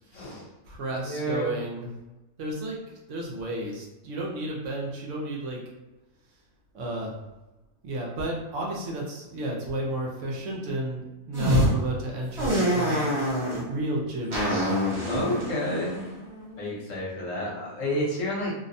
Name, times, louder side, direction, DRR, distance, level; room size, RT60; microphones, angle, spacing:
voice 1, 0.1-0.5 1.0-1.5 15.1-16.0 16.6-18.5, left 1 dB, 60° left, -5 dB, 1.1 m, -30 dB
voice 2, 0.7-1.9 2.4-2.8 3.1-5.6 6.7-7.1 7.8-13.2 13.7-14.8, right 1 dB, 65° right, -2 dB, 0.8 m, -32 dB
sound 1, 11.3-11.7 12.4-13.6 14.3-16.7, equal, 50° right, 1.2 m, -26 dB
2.7 x 2.1 x 2.5 m, 1.1 s
omnidirectional pair, 1.6 m